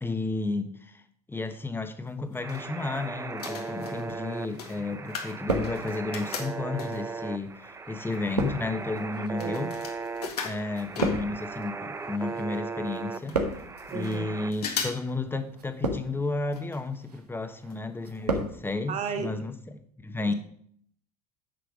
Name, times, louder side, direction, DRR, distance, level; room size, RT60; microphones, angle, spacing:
voice 1, 0.0-1.0 1.3-9.7 10.4-13.4 13.9-20.3, left 3 dB, 10° left, 1.3 m, -32 dB
sound 1, 2.1-3.0 3.3-7.2 7.8-7.9 8.1-11.7 12.0-12.1 12.3-12.4 12.9-13.0 13.3-14.2 14.5-15.1 15.4-15.5 16.5-16.8 17.1-17.2 17.7-17.8 18.2-18.3, left 6 dB, 80° left, 1.8 m, -38 dB
sound 2, 2.4-14.5, right 4 dB, 15° right, 0.7 m, -38 dB
sound 3, 4.3-4.9 5.2-6.2 7.0-12.6 12.9-13.9 14.6-14.9 15.5-16.3 16.8-17.2 17.6-18.6 18.8-18.9, right 2 dB, 85° right, 1.5 m, -33 dB
voice 2, 9.2-9.7 13.9-14.3 18.9-19.3 20.3-20.4, right 5 dB, 35° right, 1.8 m, -34 dB
10.0 x 6.6 x 5.1 m
hypercardioid pair, 80°, 20 cm